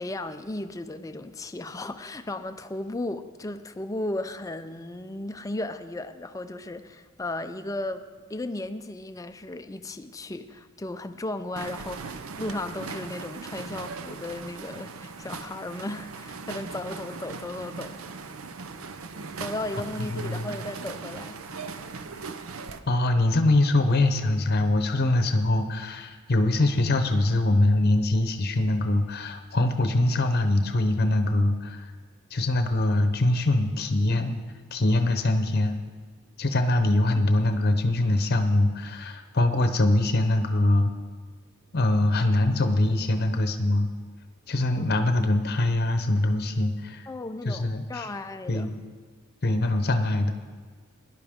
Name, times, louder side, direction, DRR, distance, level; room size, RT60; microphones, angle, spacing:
voice 1, 0.0-18.0 19.4-21.4 47.1-48.8, left 2 dB, 15° left, 9 dB, 0.4 m, -35 dB
sound 1, 11.6-22.8, right 4 dB, 80° right, 0.6 m, -39 dB
voice 2, 20.1-20.5 22.9-31.9 32.3-34.3 34.7-35.8 36.4-40.9 41.7-43.9 44.5-47.1 47.4-48.1 48.5-48.7 49.4-50.3, left 2 dB, 45° left, 7 dB, 0.8 m, -23 dB
17.5 x 11.0 x 3.6 m, 1.5 s
head